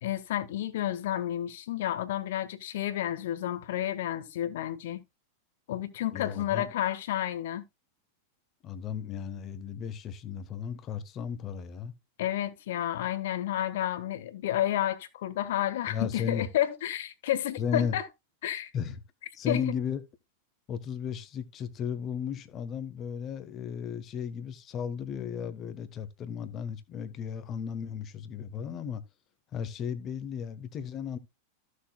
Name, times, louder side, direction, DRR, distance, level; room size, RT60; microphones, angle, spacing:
voice 1, 0.0-5.0 5.7-7.6 12.2-18.1 18.4-18.7 19.5-19.6, left 12 dB, 55° left, 1.4 m, -31 dB
voice 2, 6.1-6.7 8.6-11.9 15.9-16.5 17.6-17.9 18.7-19.0 19.3-20.0 20.7-29.0 29.5-31.2, left 7 dB, 30° left, 1.3 m, -35 dB
14.5 x 6.6 x 2.3 m
figure-of-eight pair, 90°, 0 cm